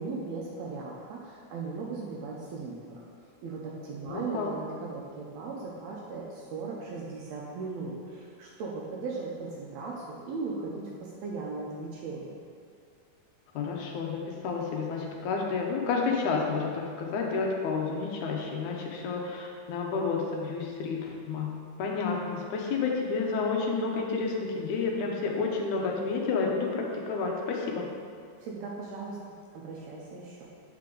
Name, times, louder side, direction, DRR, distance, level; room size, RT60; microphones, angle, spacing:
voice 1, 0.0-3.1 3.4-12.4 28.4-30.5, right 4 dB, 75° right, -3 dB, 1.7 m, -38 dB
voice 2, 4.1-4.5 13.5-27.9, left 4 dB, 80° left, 0 dB, 2.1 m, -30 dB
7.5 x 4.6 x 3.8 m, 2.1 s
omnidirectional pair, 3.6 m